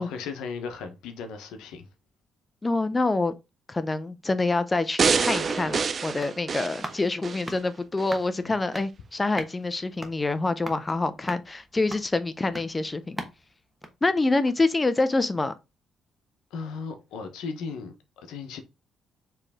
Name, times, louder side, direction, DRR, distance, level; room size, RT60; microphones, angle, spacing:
voice 1, 0.0-1.9 8.4-8.5 16.5-18.6, left 5 dB, 90° left, 0.9 m, -36 dB
voice 2, 2.6-3.3 3.7-13.2 14.0-15.5, left 3 dB, 20° left, 0.6 m, -26 dB
sound 1, 5.0-7.5 8.0-8.1, right 5 dB, 45° right, 0.4 m, -26 dB
sound 2, 5.5-14.8 15.1-15.2, right 1 dB, 5° right, 1.2 m, -43 dB
4.6 x 3.2 x 3.5 m
cardioid pair, 90°, 0 cm